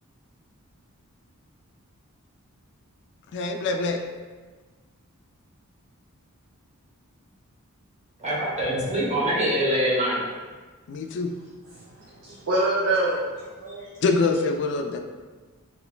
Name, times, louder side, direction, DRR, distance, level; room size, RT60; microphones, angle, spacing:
voice 1, 3.3-4.0 10.9-11.3 14.0-15.0, left 3 dB, 55° left, 5 dB, 0.3 m, -24 dB
voice 2, 8.2-10.2, equal, 30° right, -6 dB, 0.9 m, -24 dB
voice 3, 11.8-13.9, right 2 dB, 60° right, -6 dB, 0.5 m, -26 dB
3.1 x 2.9 x 2.2 m, 1.3 s
head